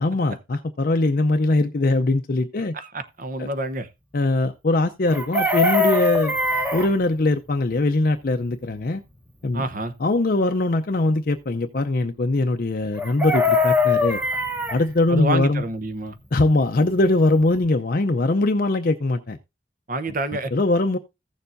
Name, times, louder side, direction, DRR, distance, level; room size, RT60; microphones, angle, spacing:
voice 1, 0.0-2.8 3.4-3.5 4.1-6.3 6.7-9.0 9.4-9.7 10.0-14.2 14.7-15.6 16.3-19.4 20.1-20.2 20.5-21.0, left 2 dB, 45° left, 0.5 m, -21 dB
voice 2, 2.7-3.9 9.5-9.9 15.1-16.1 19.9-20.5, right 2 dB, 45° right, 0.9 m, -27 dB
Chicken rooster, 5.1-6.9 13.0-14.8 17.0-17.1 17.4-17.6, left 3 dB, 10° right, 1.0 m, -21 dB
15.0 x 6.9 x 2.6 m
head